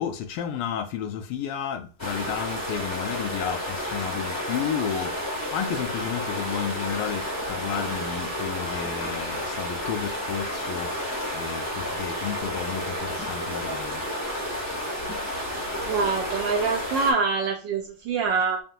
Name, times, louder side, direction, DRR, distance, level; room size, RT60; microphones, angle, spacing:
voice 1, 0.0-14.2, left 8 dB, 85° left, 1.5 m, -32 dB
sound 1, 2.0-17.1, equal, 20° left, 0.5 m, -31 dB
voice 2, 15.8-18.6, right 4 dB, 75° right, 1.1 m, -25 dB
5.1 x 2.6 x 2.7 m
omnidirectional pair, 2.4 m